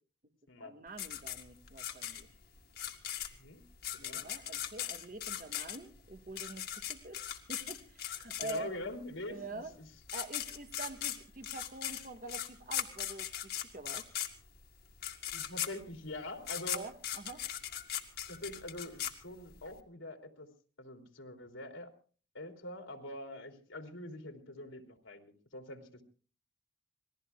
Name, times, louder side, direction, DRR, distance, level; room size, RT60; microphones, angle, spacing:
voice 1, 0.6-2.3 4.0-7.2 7.5-8.7 9.3-9.7 10.1-14.1 16.7-17.4, right 3 dB, 45° right, 6 dB, 1.5 m, -46 dB
sound 1, 1.0-8.9 9.7-9.8 10.0-19.7, left 10 dB, 55° left, 1.9 m, -39 dB
voice 2, 3.3-3.6 3.9-4.2 8.4-9.9 15.3-16.8 18.3-20.5 20.8-21.9 22.3-26.0, left 1 dB, 85° left, 4 dB, 3.2 m, -44 dB
27.5 x 20.5 x 2.3 m, 0.40 s
head